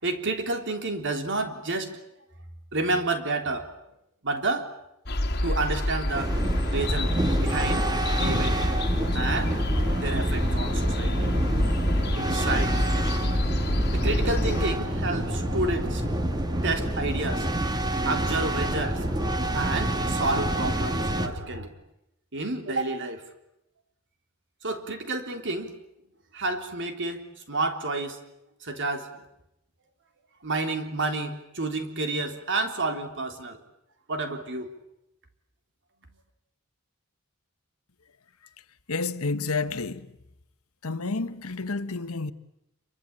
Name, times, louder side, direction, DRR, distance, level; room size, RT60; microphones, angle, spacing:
voice 1, 0.0-2.0 2.7-3.7 4.2-4.7 5.4-6.4 6.7-7.9 8.2-8.6 9.1-9.6 10.0-11.3 12.2-12.8 13.9-16.0 16.6-17.5 18.1-19.1 19.5-21.8 22.3-23.2 24.6-25.7 26.3-28.2 28.6-29.2 30.4-33.6 34.1-34.7, right 2 dB, 55° right, 3.4 m, -30 dB
sound 1, 5.1-14.8, left 1 dB, 50° left, 2.0 m, -27 dB
sound 2, 6.1-21.3, right 1 dB, 20° right, 1.8 m, -28 dB
sound 3, 6.7-21.7, equal, 85° right, 3.1 m, -36 dB
voice 2, 38.9-40.1 40.8-42.3, left 3 dB, 75° left, 1.3 m, -30 dB
28.0 x 23.0 x 8.7 m
head